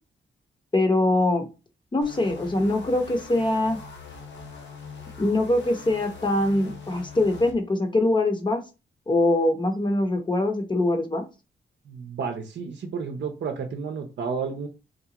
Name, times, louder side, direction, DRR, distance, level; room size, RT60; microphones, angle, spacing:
voice 1, 0.7-1.5 1.9-3.8 5.2-8.6 9.1-11.2, left 2 dB, 25° left, 5 dB, 0.8 m, -23 dB
sound 1, 2.0-7.5, left 5 dB, 65° left, 0.8 m, -42 dB
voice 2, 11.9-14.7, right 5 dB, 65° right, 4 dB, 0.6 m, -31 dB
3.9 x 2.3 x 2.8 m, 0.29 s
cardioid pair, 110°, 20 cm